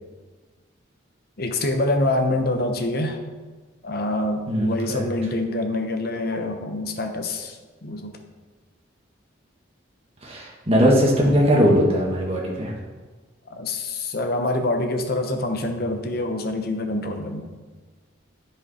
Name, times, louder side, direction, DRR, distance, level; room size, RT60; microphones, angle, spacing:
voice 1, 1.4-3.2 3.8-8.2 13.5-17.5, left 2 dB, 50° left, 5 dB, 0.8 m, -26 dB
voice 2, 4.5-5.0 10.2-12.7, equal, 30° right, -2 dB, 1.6 m, -20 dB
9.4 x 5.1 x 4.3 m, 1.4 s
head